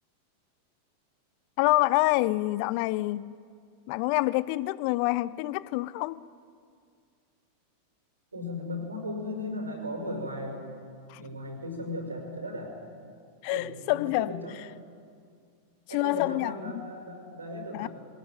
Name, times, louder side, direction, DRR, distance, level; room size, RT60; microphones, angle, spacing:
voice 1, 1.6-3.3 3.9-6.2 11.1-11.2 13.4-14.4 15.9-16.8 17.7-17.9, left 19 dB, 45° left, 0.5 m, -27 dB
voice 2, 8.3-10.9 11.1-12.8 13.5-14.6 15.9-17.9, left 1 dB, 80° right, 5.7 m, -37 dB
21.5 x 19.5 x 9.3 m
figure-of-eight pair, 90°, 0 cm